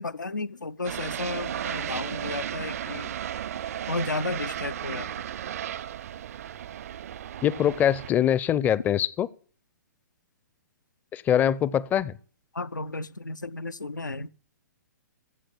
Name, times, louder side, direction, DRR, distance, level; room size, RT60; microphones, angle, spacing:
voice 1, 0.0-3.1 3.9-5.3 12.5-14.3, left 3 dB, 80° left, 0.6 m, -33 dB
sound 1, 0.8-8.1, right 10 dB, 55° right, 0.6 m, -34 dB
voice 2, 7.4-9.3 11.1-12.2, left 10 dB, 20° left, 0.6 m, -23 dB
14.5 x 7.7 x 8.6 m
figure-of-eight pair, 115°, 10 cm